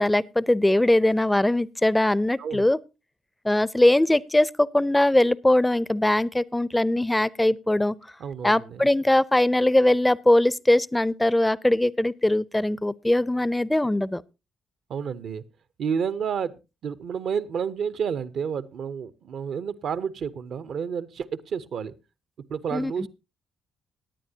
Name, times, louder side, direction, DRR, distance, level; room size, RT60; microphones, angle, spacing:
voice 1, 0.0-2.8 3.4-7.9 8.4-14.2 22.7-22.9, left 1 dB, 15° left, 0.5 m, -21 dB
voice 2, 8.2-8.8 14.9-15.4 15.8-16.6 16.8-21.9 22.5-23.1, right 7 dB, 65° right, 0.7 m, -30 dB
18.0 x 9.6 x 2.8 m
hypercardioid pair, 50°, 0 cm